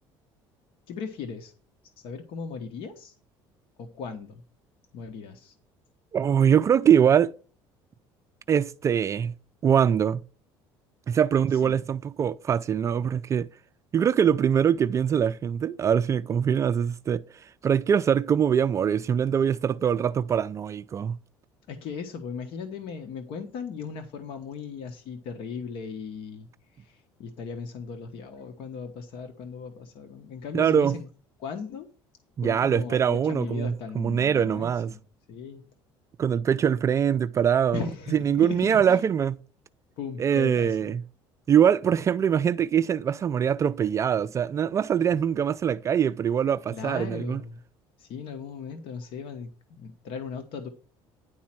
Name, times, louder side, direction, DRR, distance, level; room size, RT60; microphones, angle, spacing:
voice 1, 0.9-1.5 2.0-3.1 3.8-4.4 4.9-5.5 11.5-11.8 21.7-31.1 31.4-31.9 32.4-35.0 35.3-35.6 37.7-39.0 40.0-41.0 46.7-47.6 48.0-50.7, left 5 dB, 65° left, 1.2 m, -37 dB
voice 2, 6.1-7.3 8.5-9.3 9.6-10.2 11.1-13.5 13.9-17.2 17.6-21.2 30.5-31.0 32.4-34.9 36.2-37.8 38.1-39.4 40.2-41.0 41.5-47.4, right 8 dB, 30° right, 0.3 m, -23 dB
10.5 x 4.3 x 6.0 m
cardioid pair, 125°, 10 cm